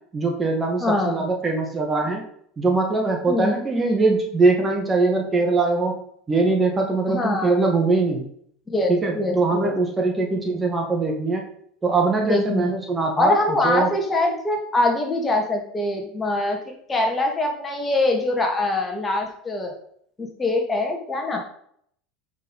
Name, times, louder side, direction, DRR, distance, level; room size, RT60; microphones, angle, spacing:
voice 1, 0.1-2.2 2.6-6.0 6.3-8.2 8.9-11.4 11.8-13.9, right 3 dB, 20° right, 2 dB, 2.0 m, -22 dB
voice 2, 0.8-1.2 3.3-3.5 7.1-7.6 8.7-9.8 12.3-12.7 13.2-19.8 20.2-21.4, left 2 dB, 20° left, 2 dB, 2.5 m, -23 dB
8.1 x 5.5 x 5.6 m, 0.65 s
supercardioid pair, 100°, 0 cm